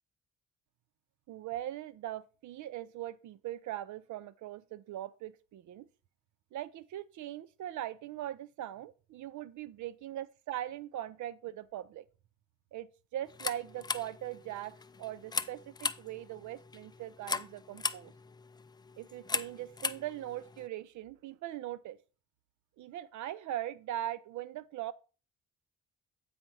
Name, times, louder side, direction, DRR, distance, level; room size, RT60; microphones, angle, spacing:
voice 1, 1.3-5.9 6.5-12.1 12.7-18.1 19.0-22.0 22.8-24.9, right 13 dB, 75° right, 0.6 m, -41 dB
sound 1, 13.3-20.7, left 4 dB, 15° left, 0.3 m, -39 dB
8.9 x 4.3 x 4.6 m
cardioid pair, 90°, 30 cm